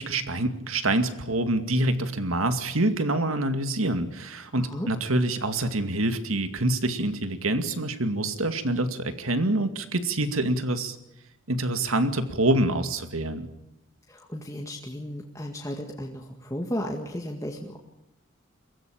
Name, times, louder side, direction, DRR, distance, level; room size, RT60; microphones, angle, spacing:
voice 1, 0.0-11.0 11.5-13.5, right 1 dB, 90° right, 9 dB, 2.3 m, -26 dB
voice 2, 4.5-4.9 14.1-17.8, equal, 15° left, 0 dB, 2.0 m, -34 dB
23.0 x 16.5 x 8.9 m, 0.90 s
head